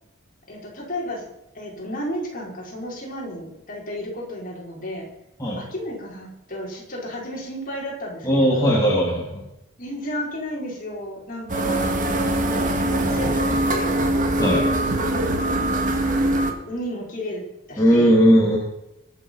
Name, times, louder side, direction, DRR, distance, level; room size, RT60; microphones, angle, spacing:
voice 1, 0.5-1.3 1.5-5.1 5.6-8.8 9.8-12.0 12.8-14.0 14.7-15.7 16.6-18.2, equal, 40° left, -3 dB, 5.5 m, -33 dB
voice 2, 8.2-9.4 14.4-14.7 17.8-18.6, equal, 15° left, -5 dB, 3.0 m, -18 dB
sound 1, 11.5-16.5, right 1 dB, 40° right, 2.1 m, -22 dB
23.5 x 8.1 x 5.7 m, 0.87 s
head